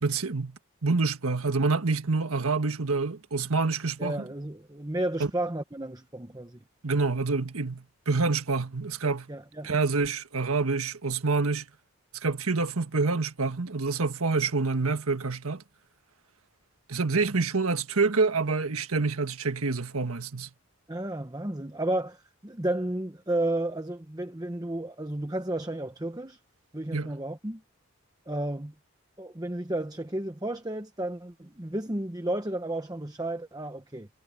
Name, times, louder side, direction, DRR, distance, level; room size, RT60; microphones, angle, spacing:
voice 1, 0.0-4.3 5.2-5.3 6.8-9.3 9.6-11.6 12.2-15.6 16.9-20.5 26.9-27.1, right 4 dB, 80° right, 1.5 m, -27 dB
voice 2, 4.0-6.6 9.3-9.7 20.9-26.4 26.7-27.6 28.3-28.7 29.2-34.1, right 1 dB, 15° right, 1.0 m, -32 dB
head